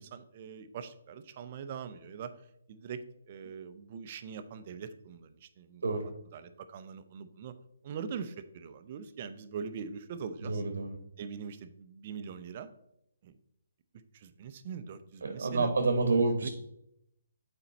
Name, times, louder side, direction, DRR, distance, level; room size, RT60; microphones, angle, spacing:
voice 1, 0.0-2.3 2.7-3.0 3.3-5.8 6.3-7.5 7.8-10.6 11.2-12.7 13.2-13.3 14.1-15.7 16.4-16.5, right 6 dB, 40° right, 10 dB, 0.5 m, -42 dB
voice 2, 10.4-10.9 15.2-16.5, right 3 dB, 75° right, 6 dB, 0.9 m, -28 dB
6.9 x 4.4 x 4.1 m, 0.79 s
hypercardioid pair, 160°, 0 cm